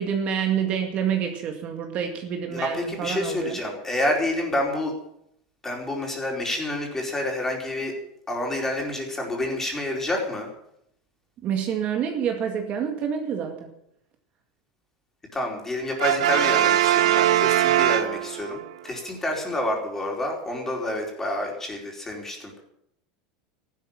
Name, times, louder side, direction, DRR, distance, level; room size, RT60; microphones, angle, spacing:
voice 1, 0.0-3.6 11.4-13.7, right 8 dB, 40° right, 4 dB, 2.1 m, -27 dB
voice 2, 2.5-4.9 5.6-7.9 8.3-10.5 15.3-22.6, left 1 dB, 10° left, 0 dB, 4.6 m, -28 dB
Brass instrument, 16.0-18.7, right 12 dB, 90° right, 0.9 m, -21 dB
14.5 x 12.5 x 7.4 m, 0.76 s
supercardioid pair, 140°, 4 cm